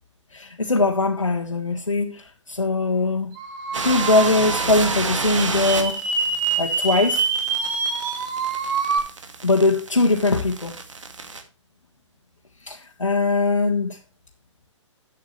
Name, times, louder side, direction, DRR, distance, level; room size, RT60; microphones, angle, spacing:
voice 1, 0.3-3.3 3.8-6.0 6.6-7.3 9.4-10.7 12.7-14.0, left 3 dB, 90° left, 1.6 m, -21 dB
sound 1, 3.4-9.0, right 5 dB, 40° right, 2.9 m, -26 dB
sound 2, 3.7-11.4, right 4 dB, 75° right, 2.3 m, -31 dB
12.5 x 8.6 x 3.2 m
figure-of-eight pair, 125°, 16 cm